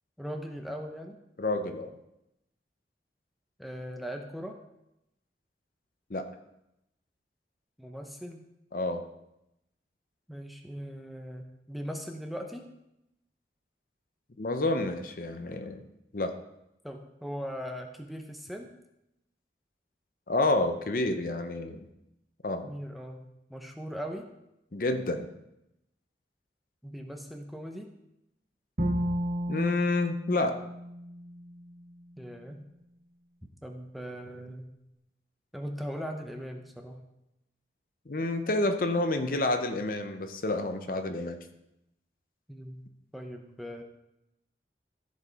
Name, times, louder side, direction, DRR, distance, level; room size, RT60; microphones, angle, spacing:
voice 1, 0.2-1.2 3.6-4.6 7.8-8.4 10.3-12.7 16.8-18.7 22.6-24.3 26.8-27.9 32.2-32.6 33.6-34.7 35.5-37.0 42.5-42.8 43.1-43.8, equal, ahead, 3 dB, 0.7 m, -39 dB
voice 2, 1.4-1.9 6.1-6.3 8.7-9.0 14.4-15.8 16.1-16.3 20.3-21.9 22.4-22.7 24.7-25.3 29.5-30.6 38.1-41.4, left 2 dB, 50° left, 7 dB, 0.7 m, -29 dB
Bowed string instrument, 28.8-31.9, equal, 55° right, 1.4 m, -33 dB
14.0 x 5.3 x 4.0 m, 0.87 s
head